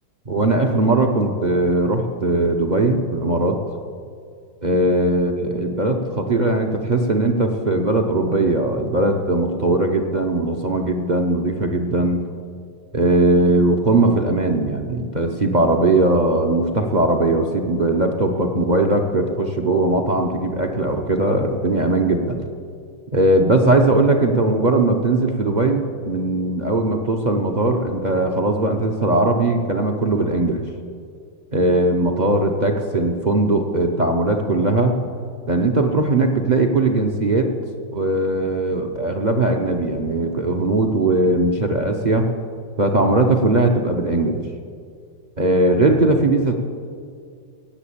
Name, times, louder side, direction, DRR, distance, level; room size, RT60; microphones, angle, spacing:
voice 1, 0.3-3.6 4.6-12.2 12.9-22.4 23.1-30.6 31.5-35.0 35.4-37.5 37.9-42.3 42.8-44.4 45.4-46.6, right 2 dB, 45° right, 3 dB, 0.5 m, -19 dB
17.5 x 7.4 x 8.6 m, 2.2 s
omnidirectional pair, 2.0 m